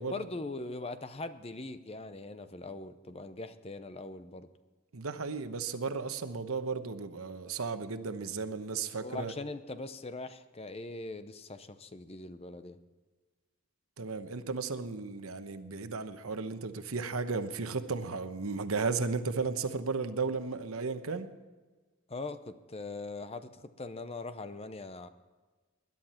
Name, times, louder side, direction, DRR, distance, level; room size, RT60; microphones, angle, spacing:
voice 1, 0.0-4.5 8.9-12.8 22.1-25.1, left 2 dB, 30° left, 11 dB, 0.7 m, -41 dB
voice 2, 4.9-9.3 14.0-21.3, right 4 dB, 80° right, 9 dB, 1.0 m, -34 dB
20.5 x 11.0 x 4.4 m, 1.3 s
head